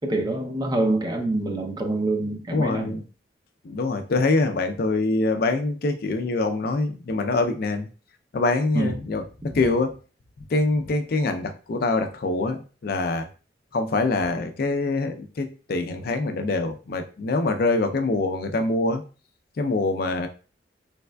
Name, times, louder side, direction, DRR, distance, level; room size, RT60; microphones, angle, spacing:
voice 1, 0.0-3.0 8.7-9.0, right 2 dB, 25° right, 0.5 m, -26 dB
voice 2, 2.5-3.0 3.6-7.9 8.3-9.9 10.5-13.3 13.7-19.0 19.6-20.3, left 3 dB, 55° left, 0.4 m, -24 dB
3.4 x 3.2 x 2.2 m
head